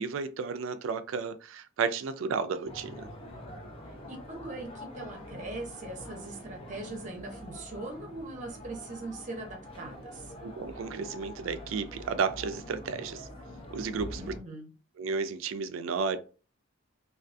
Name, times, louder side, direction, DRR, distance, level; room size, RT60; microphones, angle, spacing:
voice 1, 0.0-3.1 10.4-13.3 13.7-14.2 15.0-16.2, right 5 dB, 75° right, 0.3 m, -32 dB
sound 1, 2.7-14.4, left 1 dB, 30° left, 0.5 m, -45 dB
voice 2, 4.1-10.3 14.1-14.7, right 2 dB, 40° right, 0.7 m, -41 dB
2.4 x 2.3 x 2.5 m
head